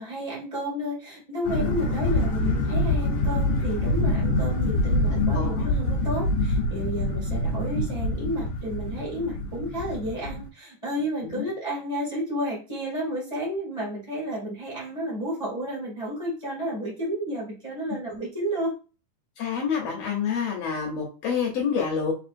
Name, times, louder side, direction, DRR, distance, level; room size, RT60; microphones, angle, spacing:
voice 1, 0.0-18.7, equal, 10° left, -6 dB, 1.3 m, -31 dB
sound 1, 1.4-10.4, left 1 dB, 90° left, 1.0 m, -25 dB
voice 2, 5.1-5.7 11.2-11.5 19.4-22.1, left 7 dB, 70° left, 0 dB, 1.6 m, -28 dB
4.5 x 4.1 x 2.5 m, 0.35 s
omnidirectional pair, 3.7 m